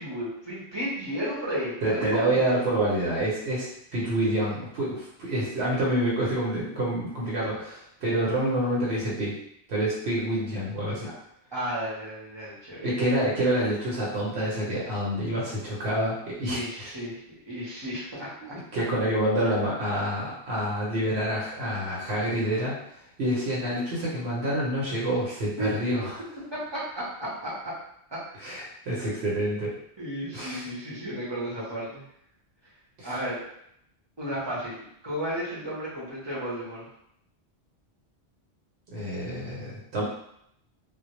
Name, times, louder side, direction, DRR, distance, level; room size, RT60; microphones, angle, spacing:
voice 1, 0.0-2.4 11.5-12.9 16.5-18.8 25.6-25.7 26.5-27.7 28.1-28.2 29.0-29.1 30.0-32.0 33.0-33.4 34.2-36.9, equal, 30° right, -8 dB, 0.6 m, -33 dB
voice 2, 1.8-9.4 9.7-11.1 12.8-16.9 18.4-22.8 23.2-26.2 28.4-29.7 30.3-30.7 33.0-33.2 38.9-40.0, right 1 dB, 75° right, -5 dB, 0.9 m, -27 dB
2.1 x 2.0 x 2.9 m, 0.73 s
omnidirectional pair, 1.1 m